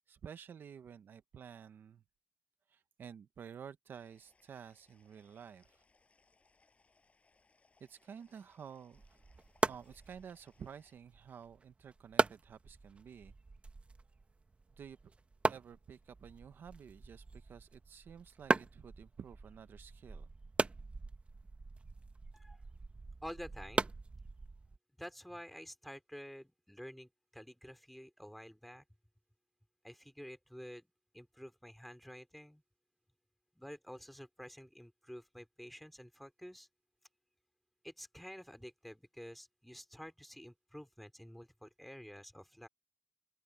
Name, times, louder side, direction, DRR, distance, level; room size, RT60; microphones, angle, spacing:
voice 1, 0.1-2.0 2.7-5.8 7.8-9.0 9.7-13.3 14.8-15.1 15.5-20.3, right 7 dB, 85° right, 0.9 m, -51 dB
sound 1, 3.9-10.9, left 3 dB, 40° left, 7.2 m, -72 dB
sound 2, 8.9-24.8, right 3 dB, 35° right, 1.2 m, -39 dB
voice 2, 23.2-23.9 25.0-28.8 29.8-30.9 31.1-32.6 33.6-36.7 37.8-42.7, equal, ahead, 4.1 m, -50 dB
open air
cardioid pair, 85°, 4 cm